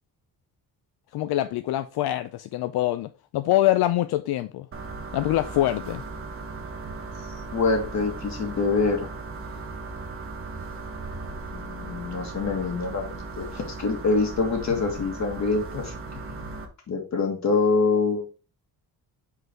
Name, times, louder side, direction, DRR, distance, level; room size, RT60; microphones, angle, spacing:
voice 1, 1.1-4.7 5.1-6.0, left 14 dB, 80° left, 0.5 m, -24 dB
sound 1, 4.7-16.7, right 3 dB, 35° right, 1.0 m, -37 dB
voice 2, 7.5-9.1 11.5-16.5 16.9-18.3, left 4 dB, 45° left, 1.8 m, -25 dB
5.6 x 3.9 x 4.4 m
cardioid pair, 150°, 37 cm